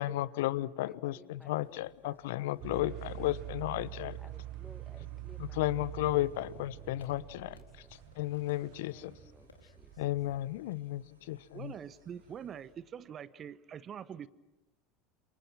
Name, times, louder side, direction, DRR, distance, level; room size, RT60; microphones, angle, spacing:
voice 1, 0.0-4.2 5.4-7.8 8.1-9.1 10.0-11.7, left 16 dB, 65° left, 19 dB, 1.0 m, -34 dB
voice 2, 0.8-3.5 4.2-6.3 6.7-7.9 8.6-10.2 11.2-11.3 11.9-12.0, left 1 dB, 5° left, 8 dB, 2.2 m, -59 dB
sound 1, 1.3-12.9, left 4 dB, 90° right, 7.6 m, -67 dB
sound 2, 2.6-10.4, right 15 dB, 50° right, 1.4 m, -45 dB
sound 3, 4.2-12.5, left 5 dB, 80° left, 4.2 m, -65 dB
voice 3, 11.5-14.3, right 8 dB, 35° right, 17 dB, 1.1 m, -44 dB
29.5 x 28.5 x 6.2 m, 1.0 s
figure-of-eight pair, 75°, 0 cm